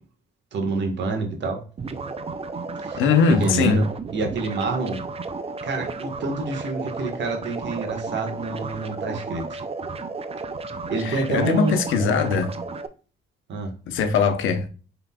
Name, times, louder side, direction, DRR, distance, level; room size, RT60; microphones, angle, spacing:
voice 1, 0.5-1.6 2.8-3.9 4.1-5.0 5.6-9.6 10.8-11.8 13.5-13.7, right 3 dB, 65° right, 1.5 m, -27 dB
sound 1, 1.8-12.9, right 4 dB, 30° right, 0.5 m, -33 dB
voice 2, 3.0-3.8 11.0-12.5 13.9-14.7, left 5 dB, 85° left, 0.8 m, -21 dB
5.6 x 3.9 x 2.3 m
cardioid pair, 90°, 20 cm